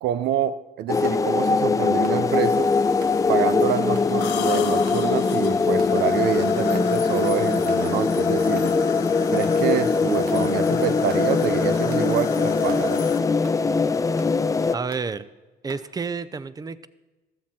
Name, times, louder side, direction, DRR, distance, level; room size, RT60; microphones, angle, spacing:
voice 1, 0.0-2.7 3.3-8.7 9.3-13.0, right 11 dB, 80° right, 14 dB, 0.6 m, -27 dB
sound 1, 0.9-14.8, left 4 dB, 20° left, 0.5 m, -21 dB
sound 2, 1.0-1.2 2.0-2.3 3.0-3.2 3.9-4.1 4.9-5.1 5.8-6.0 6.7-6.9 7.7-7.9 8.5-8.7 9.4-9.6 10.3-10.4 11.1-11.3 11.9-12.1 12.7-12.9 13.4-13.6 14.2-14.4 14.9-15.1 15.7-15.9, right 5 dB, 60° right, 1.9 m, -44 dB
sound 3, 2.3-13.2, left 10 dB, 80° left, 1.3 m, -39 dB
voice 2, 14.7-15.3 15.6-16.9, right 5 dB, 20° right, 15 dB, 0.7 m, -30 dB
14.0 x 13.5 x 4.3 m, 1.2 s
cardioid pair, 110°, 17 cm